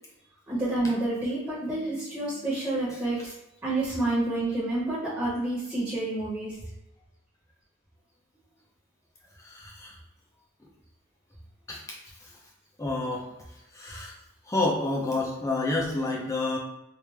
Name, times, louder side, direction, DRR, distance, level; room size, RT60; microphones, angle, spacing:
voice 1, 0.5-3.3 3.6-6.5, right 2 dB, 15° right, -8 dB, 1.1 m, -29 dB
voice 2, 9.4-9.9 11.7-12.0 12.8-13.3 13.7-14.1 14.5-16.6, left 2 dB, 15° left, -2 dB, 0.6 m, -29 dB
3.2 x 2.6 x 3.4 m, 0.92 s
head